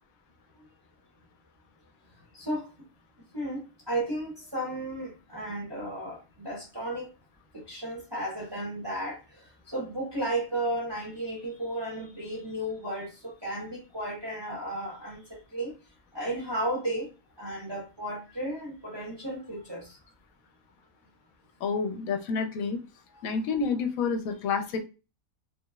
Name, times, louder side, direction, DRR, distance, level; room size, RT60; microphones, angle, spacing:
voice 1, 2.3-2.7 3.3-7.1 7.5-15.7 16.1-17.1 17.4-20.0 23.1-23.3, right 1 dB, 25° right, -2 dB, 0.6 m, -34 dB
voice 2, 21.6-22.8 23.2-24.8, left 5 dB, 80° left, 6 dB, 1.0 m, -29 dB
2.9 x 2.9 x 2.3 m, 0.30 s
omnidirectional pair, 1.4 m